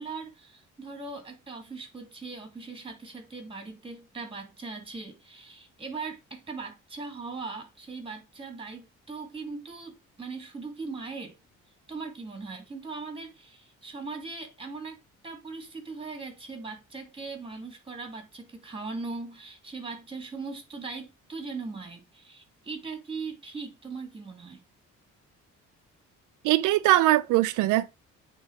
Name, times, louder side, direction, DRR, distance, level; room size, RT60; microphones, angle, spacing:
voice 1, 0.0-11.4 11.9-15.0 15.2-24.6, right 4 dB, 20° right, 2.9 m, -39 dB
voice 2, 26.4-27.9, right 16 dB, 90° right, 0.5 m, -21 dB
8.9 x 3.8 x 4.8 m
cardioid pair, 90°, 30 cm